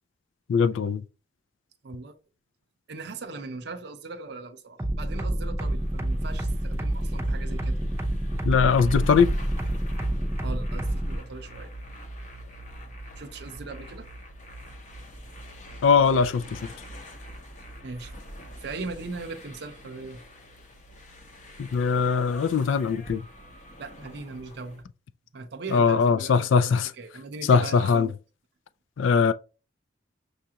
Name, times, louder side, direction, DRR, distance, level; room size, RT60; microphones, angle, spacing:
voice 1, 0.5-1.0 8.5-9.3 15.8-16.6 21.6-23.2 25.7-26.9 27.5-28.1 29.0-29.3, left 5 dB, 80° left, 0.3 m, -21 dB
voice 2, 1.8-2.2 2.9-7.8 10.4-11.7 13.2-14.1 17.8-18.1 18.6-20.2 23.8-24.8 25.3-28.1, right 3 dB, 60° right, 0.5 m, -39 dB
sound 1, 4.8-11.2, right 1 dB, 15° right, 0.5 m, -28 dB
sound 2, 5.6-24.8, equal, 40° left, 0.8 m, -41 dB
6.4 x 2.4 x 2.8 m
head